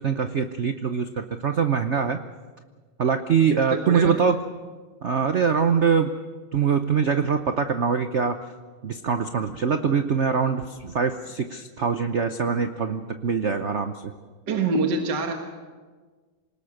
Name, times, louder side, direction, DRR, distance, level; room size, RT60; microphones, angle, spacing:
voice 1, 0.0-2.2 3.0-4.4 5.0-6.1 6.5-8.4 8.8-13.9, right 6 dB, 80° right, 8 dB, 0.6 m, -23 dB
voice 2, 3.7-4.2 14.5-15.3, right 3 dB, 55° right, 3 dB, 2.1 m, -25 dB
27.5 x 19.5 x 6.5 m, 1.4 s
omnidirectional pair, 2.4 m